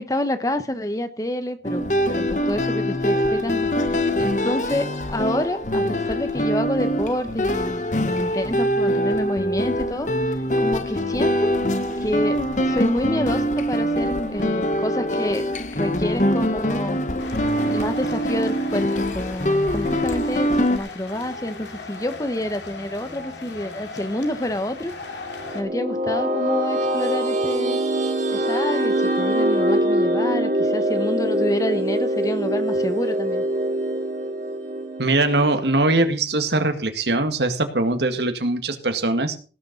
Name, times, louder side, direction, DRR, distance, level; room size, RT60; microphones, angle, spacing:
voice 1, 0.0-10.1 10.6-11.5 12.0-15.5 15.7-17.0 17.7-24.9 25.5-27.8 28.3-33.4, left 1 dB, 20° left, 10 dB, 1.0 m, -28 dB
sound 1, 1.6-20.8, equal, 45° left, 1.0 m, -23 dB
sound 2, 17.2-25.6, left 3 dB, 90° left, 2.7 m, -38 dB
sound 3, 25.3-36.1, right 1 dB, 45° right, 2.5 m, -23 dB
voice 2, 35.0-39.4, right 2 dB, 75° right, 7 dB, 1.9 m, -21 dB
18.0 x 6.8 x 5.3 m, 0.37 s
head